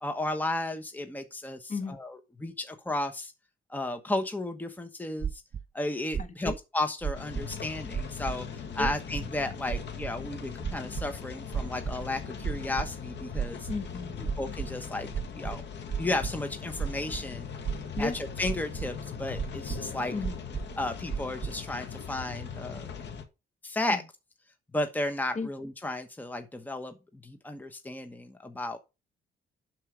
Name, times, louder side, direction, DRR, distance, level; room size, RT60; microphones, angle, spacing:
voice 1, 0.0-3.3 3.7-5.4 5.7-13.7 14.4-15.6 16.0-17.5 18.0-20.2 20.8-22.9 23.6-24.0 24.7-28.8, left 2 dB, 10° left, 1.1 m, -34 dB
sound 1, 5.2-5.6 6.1-6.6 7.0-7.6 7.9-8.4 8.8-9.3 9.7-10.1 10.6-11.1 11.5-12.0 12.4-12.9 13.3-13.9 14.2-14.7 15.1-16.3 16.8-17.2 17.6-18.2 18.4-18.9 19.3-19.8 20.2-20.7 21.1-21.5, right 7 dB, 35° right, 0.9 m, -33 dB
voice 2, 6.2-6.5 8.8-8.9 13.7-14.3 18.0-18.2 20.1-20.4 23.9-24.0 25.3-25.5, left 4 dB, 35° left, 1.5 m, -34 dB
sound 2, 7.1-23.2, left 6 dB, 60° left, 1.8 m, -40 dB
11.0 x 4.5 x 5.0 m
cardioid pair, 90°, 20 cm